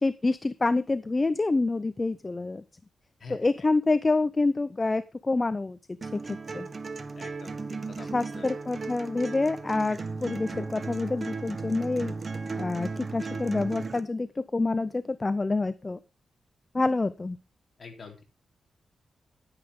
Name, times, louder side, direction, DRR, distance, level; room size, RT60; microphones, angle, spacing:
voice 1, 0.0-2.6 3.3-6.7 8.0-12.1 12.6-16.0 16.7-17.4, left 3 dB, 25° left, 14 dB, 0.5 m, -27 dB
sound 1, 6.0-14.0, right 4 dB, 40° right, 1.1 m, -36 dB
voice 2, 7.2-7.6 7.9-8.5 17.8-18.2, left 4 dB, 45° left, 2 dB, 3.6 m, -45 dB
10.5 x 9.7 x 3.6 m, 0.29 s
wide cardioid pair, 110°, 0 cm